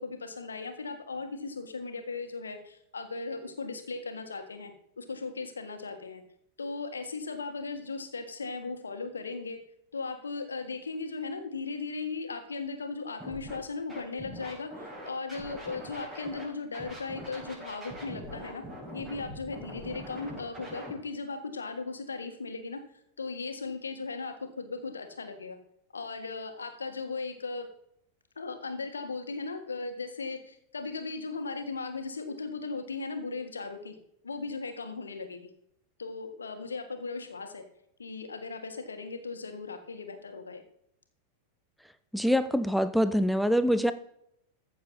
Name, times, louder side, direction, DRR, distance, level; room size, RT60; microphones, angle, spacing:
voice 1, 0.0-6.2 6.6-9.6 9.9-18.6 18.9-22.8 23.2-25.6 25.9-27.7 28.4-34.0 34.2-35.5 36.0-37.6 38.0-40.6, left 4 dB, 75° left, 7 dB, 1.7 m, -37 dB
Scratching (performance technique), 13.2-13.6 13.9-16.4 16.7-20.9, equal, 15° right, 5.0 m, -43 dB
voice 2, 42.1-43.9, equal, ahead, 11 dB, 0.6 m, -25 dB
14.5 x 6.8 x 4.2 m, 0.73 s
figure-of-eight pair, 90°, 0 cm